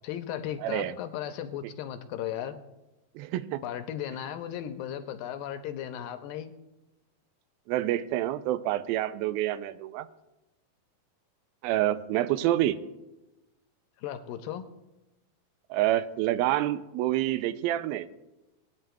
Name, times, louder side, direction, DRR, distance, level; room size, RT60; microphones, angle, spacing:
voice 1, 0.0-2.5 3.6-6.5 14.0-14.6, left 10 dB, 80° left, 8 dB, 2.2 m, -36 dB
voice 2, 0.6-0.9 3.2-3.6 7.7-10.1 11.6-12.8 15.7-18.1, right 14 dB, 85° right, 13 dB, 2.4 m, -27 dB
20.5 x 9.4 x 2.3 m, 0.99 s
omnidirectional pair, 4.3 m